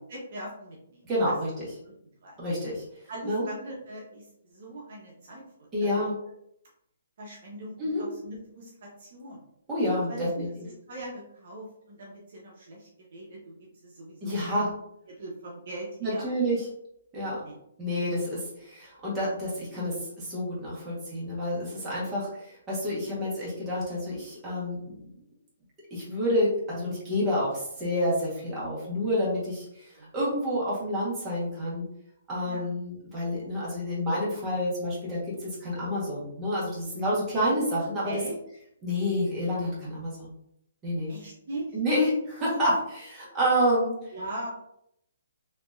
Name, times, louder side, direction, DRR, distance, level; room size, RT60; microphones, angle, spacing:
voice 1, 0.1-1.3 1.8-1.9 2.2-2.4 3.1-6.0 7.2-9.4 10.1-13.5 13.8-14.6 15.1-16.3 17.4-17.6 30.0-30.1 32.4-32.7 38.0-38.4 41.1-41.8 44.1-44.5, right 1 dB, 50° right, -2 dB, 1.0 m, -41 dB
voice 2, 1.0-1.5 2.4-2.8 3.2-3.4 5.7-6.1 7.8-8.0 9.7-10.5 14.2-14.7 16.0-16.7 17.1-17.4 17.8-24.8 25.9-31.9 32.3-38.1 38.8-40.3 40.8-41.1 41.7-43.9, equal, 15° right, -7 dB, 1.5 m, -28 dB
4.4 x 2.9 x 2.6 m, 0.75 s
hypercardioid pair, 165°, 0 cm